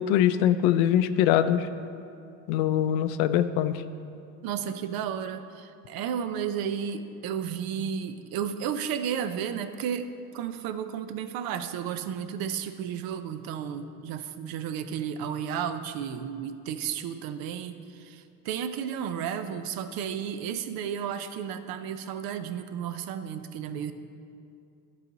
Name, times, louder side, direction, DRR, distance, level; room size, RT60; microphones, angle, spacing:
voice 1, 0.0-1.7 2.5-3.8, left 11 dB, 75° left, 12 dB, 0.5 m, -23 dB
voice 2, 4.4-23.9, right 8 dB, 60° right, 10 dB, 0.6 m, -33 dB
11.5 x 4.9 x 3.9 m, 2.5 s
supercardioid pair, 100°, 41 cm